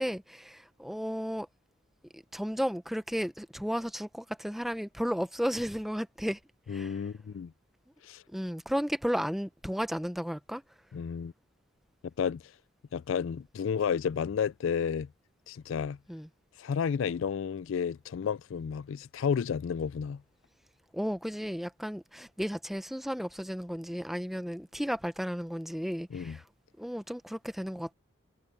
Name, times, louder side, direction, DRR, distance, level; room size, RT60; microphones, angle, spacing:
voice 1, 0.0-1.5 2.1-6.4 6.7-7.0 8.3-10.6 16.1-16.3 20.9-26.4 26.8-27.9, equal, ahead, 0.7 m, -33 dB
voice 2, 6.7-7.5 8.0-8.2 10.9-11.3 12.2-12.4 12.9-15.1 15.5-16.0 16.6-20.2 26.1-26.4, left 7 dB, 65° left, 0.3 m, -31 dB
head